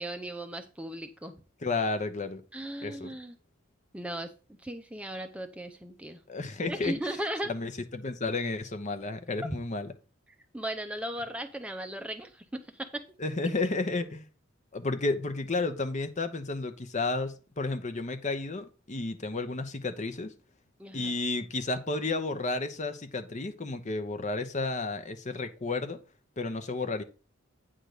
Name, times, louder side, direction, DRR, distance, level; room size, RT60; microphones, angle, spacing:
voice 1, 0.0-1.3 2.5-3.4 3.9-4.3 4.6-6.2 6.7-7.5 10.5-13.0 20.8-21.1, right 1 dB, 5° right, 0.7 m, -37 dB
voice 2, 1.6-2.4 2.8-3.1 6.3-6.9 7.5-9.9 13.2-14.2 14.7-20.3 20.9-26.0 26.4-27.0, left 3 dB, 35° left, 0.8 m, -32 dB
9.2 x 3.8 x 6.5 m
head